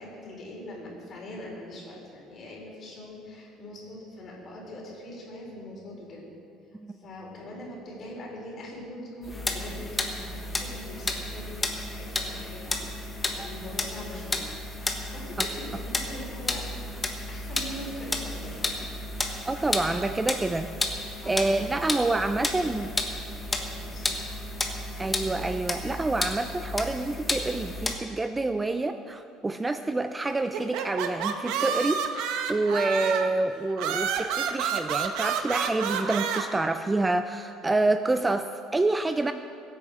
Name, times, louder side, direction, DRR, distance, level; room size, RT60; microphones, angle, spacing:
voice 1, 0.0-6.2 6.9-16.6 17.3-18.9 21.2-21.7 23.6-24.2, left 1 dB, 35° left, -2 dB, 4.2 m, -42 dB
sound 1, 9.2-28.0, left 2 dB, 15° left, 1.2 m, -32 dB
voice 2, 19.5-20.7 21.2-22.9 25.0-39.3, right 2 dB, 10° right, 9 dB, 0.4 m, -27 dB
sound 2, 30.5-33.4 33.8-36.4, right 7 dB, 75° right, 1.1 m, -29 dB
21.5 x 8.7 x 4.9 m, 2.4 s
cardioid pair, 150°, 0 cm